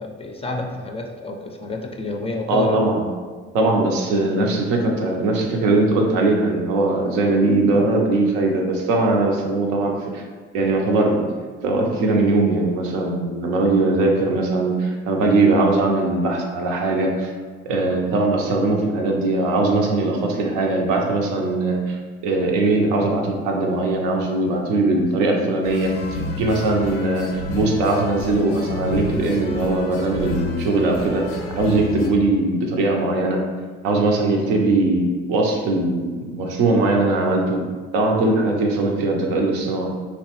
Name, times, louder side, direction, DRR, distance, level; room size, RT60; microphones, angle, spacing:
voice 1, 0.0-2.9 34.4-34.5, left 2 dB, 20° left, 2 dB, 0.3 m, -29 dB
voice 2, 2.5-3.1 3.5-10.2 10.5-11.3 11.6-17.3 17.7-22.0 22.2-25.9 26.4-31.3 31.6-33.4 33.8-37.6 37.9-39.9, right 2 dB, 80° right, 1 dB, 0.5 m, -20 dB
sound 1, 25.6-32.1, left 2 dB, 90° left, 0.5 m, -30 dB
2.8 x 2.1 x 2.8 m, 1.5 s
hypercardioid pair, 55°, 29 cm